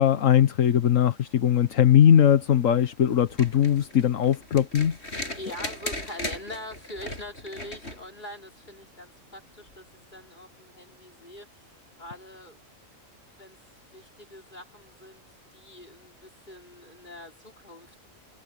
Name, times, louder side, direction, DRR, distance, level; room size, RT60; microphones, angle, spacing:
voice 1, 0.0-5.0, left 9 dB, 70° left, 1.4 m, -20 dB
sound 1, 3.2-8.0 9.7-9.8, left 1 dB, 55° left, 7.2 m, -37 dB
voice 2, 5.1-9.9 10.1-11.7 12.0-12.6 13.4-15.2 15.5-18.0, left 1 dB, 35° left, 4.4 m, -43 dB
omnidirectional pair, 1.4 m